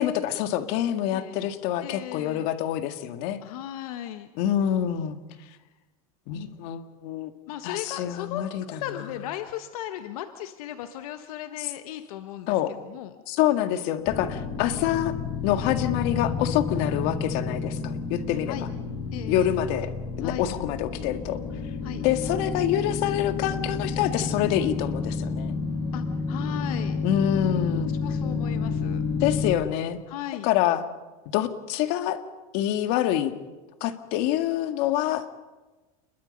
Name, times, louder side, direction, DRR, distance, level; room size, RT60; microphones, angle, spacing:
voice 1, 0.0-3.4 4.4-5.2 6.3-7.3 7.6-8.8 12.5-12.7 13.3-15.1 15.4-18.6 19.3-19.9 20.2-21.4 22.0-25.6 27.0-27.9 29.2-30.0 30.4-30.8 31.3-32.2 32.5-33.3 33.8-35.2, left 11 dB, 55° left, 8 dB, 2.0 m, -26 dB
voice 2, 1.1-1.4 1.8-2.5 3.4-4.3 5.6-5.7 7.5-13.1 16.8-16.9 18.5-18.7 19.1-19.5 20.2-20.5 21.8-22.0 25.9-27.0 27.8-29.0 30.1-30.5, left 12 dB, 80° left, 8 dB, 1.4 m, -37 dB
sound 1, 14.1-29.6, left 4 dB, 20° left, 4.1 m, -30 dB
29.0 x 21.5 x 5.4 m, 1.2 s
supercardioid pair, 135°, 19 cm